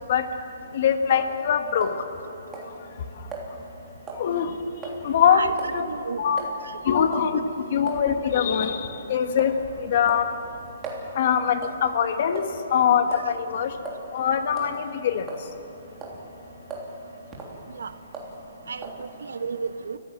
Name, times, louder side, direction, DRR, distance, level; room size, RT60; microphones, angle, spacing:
voice 1, 0.7-1.9 4.2-4.6 5.0-5.8 6.2-6.4 6.9-7.4 7.7-10.3 11.1-13.7 14.1-15.3, left 8 dB, 50° left, 7 dB, 1.6 m, -23 dB
sound 1, 1.1-1.3 1.8-2.3 2.5-2.7 3.3-3.5 4.1-4.3 4.8-5.0 5.6-5.8 6.4-6.5 7.1-7.3 7.9-8.0 8.6-8.8 9.4-9.6 10.1-11.1 11.6-11.8 12.4-12.7 13.1-13.3 13.9-14.0 14.5-14.7 15.3-15.7 16.0-16.2 16.7-16.9 17.3-17.6 18.1-18.4 18.8-19.0, right 4 dB, 15° right, 3.2 m, -38 dB
voice 2, 5.2-5.5 5.8-6.2 17.8-17.9 18.7-20.0, right 5 dB, 90° right, 10 dB, 1.2 m, -32 dB
28.5 x 15.0 x 7.6 m, 2.9 s
hypercardioid pair, 155°, 0 cm